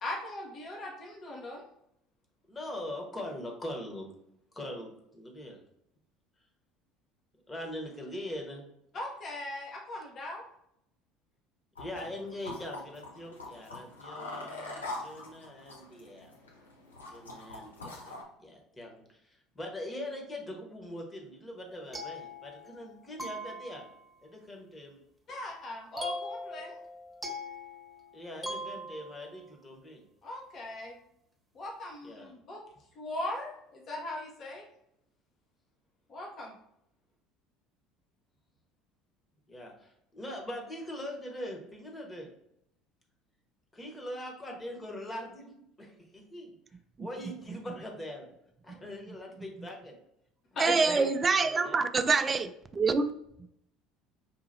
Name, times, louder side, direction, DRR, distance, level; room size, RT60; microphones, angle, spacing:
voice 1, 0.0-1.6 8.9-10.4 25.3-26.8 30.2-31.0 31.5-32.6 32.9-34.6 36.1-36.6 50.5-51.1, left 1 dB, 40° left, -1 dB, 0.9 m, -39 dB
voice 2, 2.5-4.1 4.5-5.6 7.5-8.7 11.8-16.3 17.1-23.9 24.2-25.0 28.1-30.0 32.0-32.3 39.5-42.3 43.7-46.5 47.0-48.3 48.6-50.0 50.6-51.0 51.3-51.8, left 1 dB, 20° left, 1 dB, 1.2 m, -42 dB
sound 1, 11.8-18.2, left 2 dB, 85° left, 0.7 m, -44 dB
sound 2, 21.7-22.9 23.2-24.1 26.0-29.4, left 1 dB, 5° right, 1.1 m, -41 dB
voice 3, 50.6-53.2, right 4 dB, 30° right, 10 dB, 0.3 m, -26 dB
5.5 x 2.7 x 2.7 m, 0.76 s
figure-of-eight pair, 65°, 0 cm